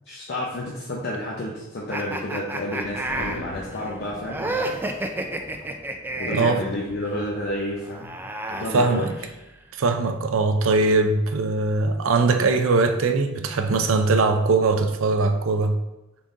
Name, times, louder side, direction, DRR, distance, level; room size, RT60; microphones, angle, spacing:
voice 1, 0.1-4.8 6.2-8.2 8.5-9.1, left 1 dB, 55° left, 0.7 m, -30 dB
evil laughter joker, 1.9-6.6 7.8-9.5, right 1 dB, 10° right, 0.3 m, -31 dB
sound 1, 2.7-8.2, left 1 dB, 80° left, 1.1 m, -43 dB
voice 2, 6.3-6.6 8.7-9.1 9.7-15.8, right 3 dB, 75° right, 0.5 m, -21 dB
3.8 x 3.7 x 3.7 m
head